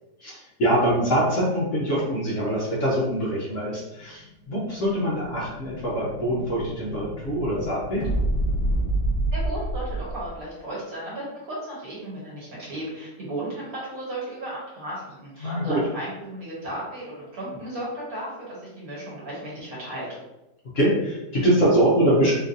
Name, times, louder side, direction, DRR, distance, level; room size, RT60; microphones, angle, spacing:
voice 1, 0.2-8.0 15.4-15.8 20.7-22.3, right 1 dB, 55° left, -6 dB, 1.0 m, -24 dB
Explosion, 4.3-10.4, right 1 dB, 90° left, 1.4 m, -28 dB
voice 2, 9.3-20.1, right 1 dB, 60° right, -6 dB, 1.6 m, -34 dB
3.7 x 2.5 x 2.6 m, 0.99 s
omnidirectional pair, 1.8 m